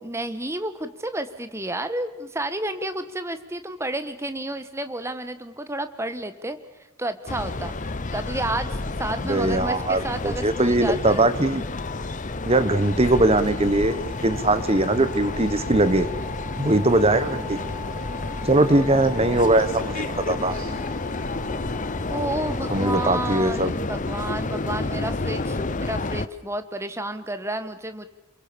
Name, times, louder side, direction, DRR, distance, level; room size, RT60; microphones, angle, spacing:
voice 1, 0.0-6.6 7.0-11.2 22.1-28.1, right 1 dB, 15° right, 10 dB, 1.4 m, -31 dB
sound 1, 7.3-26.3, left 3 dB, 40° left, 0.8 m, -30 dB
voice 2, 9.2-11.6 12.4-16.1 16.6-17.6 18.4-20.5 22.7-23.7, right 2 dB, 30° right, 12 dB, 1.3 m, -21 dB
sound 2, 10.2-23.7, left 2 dB, 10° left, 6.7 m, -42 dB
Crow, 16.2-22.8, right 1 dB, 75° right, 3.6 m, -43 dB
28.0 x 22.5 x 7.1 m, 1.0 s
head